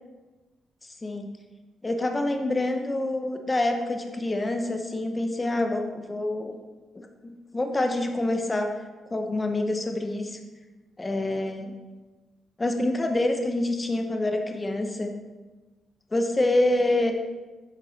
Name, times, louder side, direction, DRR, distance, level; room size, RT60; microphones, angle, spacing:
voice 1, 0.8-1.3 1.8-6.6 6.9-8.7 9.1-10.4 11.0-11.7 12.6-15.1 16.1-17.1, left 2 dB, 20° left, 4 dB, 0.4 m, -26 dB
8.5 x 3.0 x 3.8 m, 1.2 s
cardioid pair, 115°, 0 cm